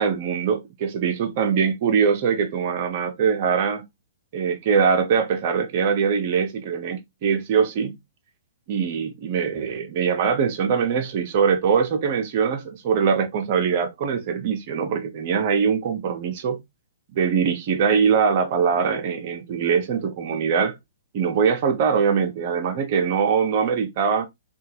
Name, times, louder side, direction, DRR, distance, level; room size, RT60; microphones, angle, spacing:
voice 1, 0.0-3.8 4.3-7.9 8.7-16.6 17.1-20.8 21.1-24.3, right 6 dB, 50° right, 0.8 m, -22 dB
2.7 x 2.4 x 2.8 m
hypercardioid pair, 130°, 0 cm